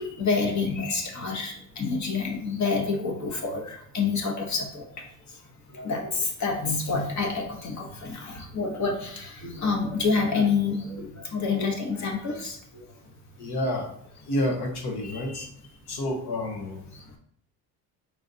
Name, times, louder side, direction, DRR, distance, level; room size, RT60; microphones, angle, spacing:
voice 1, 0.0-5.4 5.7-12.8 15.0-15.5 16.9-17.2, left 4 dB, 45° left, 2 dB, 1.0 m, -28 dB
voice 2, 13.4-13.9 14.1-15.5 15.9-16.9, left 1 dB, 70° left, 2 dB, 1.2 m, -29 dB
4.7 x 3.9 x 2.7 m, 0.65 s
cardioid pair, 120°, 41 cm